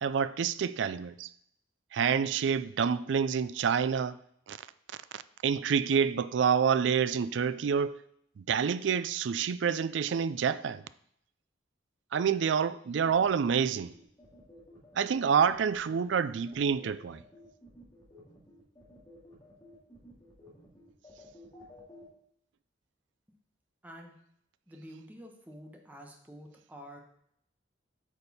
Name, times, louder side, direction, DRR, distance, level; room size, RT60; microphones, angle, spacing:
voice 1, 0.0-1.3 1.9-4.2 4.5-4.6 5.1-8.0 8.4-10.8 12.1-13.9 15.0-17.2, right 7 dB, 70° right, 0.4 m, -28 dB
sound 1, 13.2-22.0, equal, 20° left, 2.2 m, -54 dB
voice 2, 23.8-24.1 24.7-27.0, equal, 10° right, 1.1 m, -48 dB
8.4 x 5.3 x 4.1 m
head